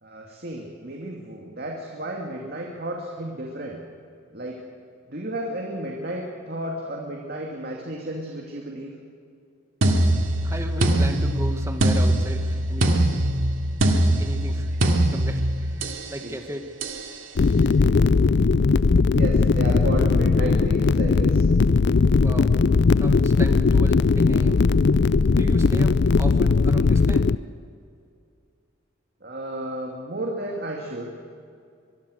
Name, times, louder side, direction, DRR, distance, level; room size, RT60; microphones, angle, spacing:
voice 1, 0.0-3.8 4.3-4.6 5.1-8.9 14.7-14.8 16.2-16.3 18.1-18.7 19.2-21.4 29.2-31.1, right 1 dB, 50° right, 0 dB, 2.6 m, -33 dB
sound 1, 9.8-16.1 16.8-17.1, right 1 dB, 80° right, 2.5 m, -22 dB
voice 2, 10.4-13.3 14.2-14.7 15.1-16.7 22.2-22.5 23.0-24.6 25.3-25.9 26.2-27.3, right 1 dB, 15° right, 5 dB, 1.5 m, -35 dB
sound 2, 17.4-27.3, left 4 dB, 55° left, 0.5 m, -19 dB
24.0 x 22.0 x 6.6 m, 2.4 s
head